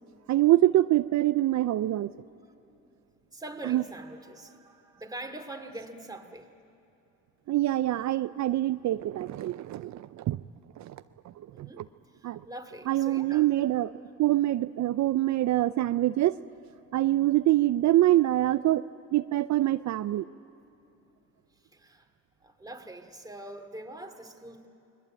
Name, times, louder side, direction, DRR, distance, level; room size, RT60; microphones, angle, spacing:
voice 1, 0.3-2.1 3.6-3.8 7.5-10.4 10.8-10.9 11.6-11.8 12.2-12.4 12.8-13.9 14.2-16.4 16.9-18.9 19.1-20.2, right 15 dB, 65° right, 12 dB, 0.6 m, -25 dB
voice 2, 3.3-6.5 11.5-13.5 21.5-22.1 22.4-24.7, right 1 dB, 10° right, 5 dB, 2.6 m, -43 dB
29.0 x 21.5 x 9.0 m, 3.0 s
cardioid pair, 90°, 30 cm